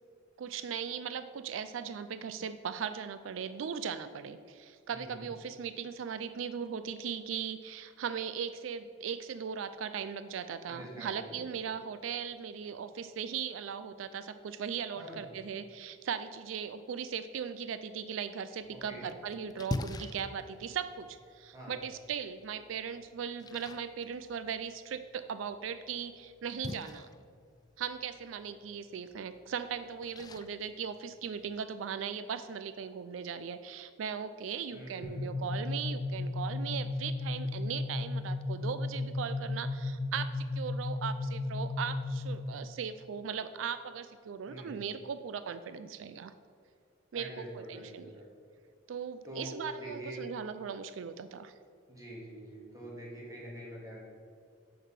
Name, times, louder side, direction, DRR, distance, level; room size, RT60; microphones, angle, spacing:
voice 1, 0.4-27.1 27.8-46.3 47.1-48.2 48.9-51.5, right 7 dB, 85° right, 12 dB, 0.4 m, -38 dB
voice 2, 4.9-5.3 10.7-11.4 15.0-15.3 18.7-19.0 21.5-21.8 34.7-35.5 44.5-44.8 47.1-48.3 49.2-50.2 51.9-54.0, right 1 dB, 20° right, -4 dB, 2.3 m, -45 dB
Splash splatter, 18.6-31.6, left 2 dB, 20° left, 0.3 m, -46 dB
sound 1, 35.0-42.6, left 2 dB, 75° left, 0.9 m, -35 dB
6.7 x 6.6 x 5.8 m, 2.3 s
head